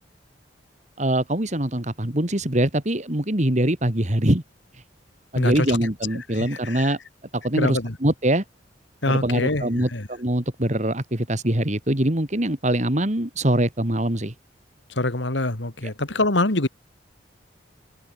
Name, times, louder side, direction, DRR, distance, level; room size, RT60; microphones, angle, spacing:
voice 1, 1.0-4.4 5.3-7.0 7.3-8.4 9.1-14.3, right 1 dB, 40° right, 2.8 m, -23 dB
voice 2, 5.3-5.8 6.3-7.0 7.6-8.0 9.0-10.1 14.9-16.7, left 2 dB, 80° left, 2.6 m, -25 dB
open air
head